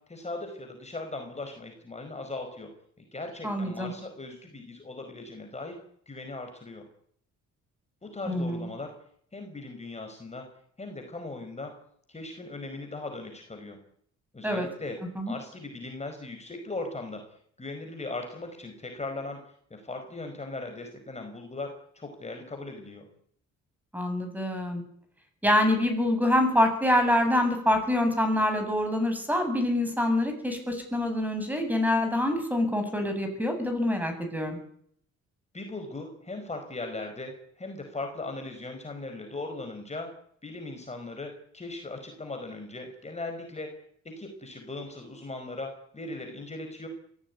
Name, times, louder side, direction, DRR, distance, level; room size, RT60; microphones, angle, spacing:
voice 1, 0.1-2.7 3.0-5.8 6.1-6.8 8.0-8.9 9.3-10.5 10.8-11.7 12.1-13.8 14.3-15.0 15.3-17.2 17.6-19.4 19.7-23.0 35.5-40.1 40.4-43.7 44.0-46.9, left 2 dB, 20° left, 4 dB, 4.9 m, -38 dB
voice 2, 3.4-3.9 8.3-8.7 14.4-14.7 15.2-15.3 23.9-24.8 25.4-34.6, left 1 dB, 5° right, 6 dB, 8.0 m, -26 dB
22.5 x 16.5 x 9.6 m, 0.66 s
cardioid pair, 90°, 30 cm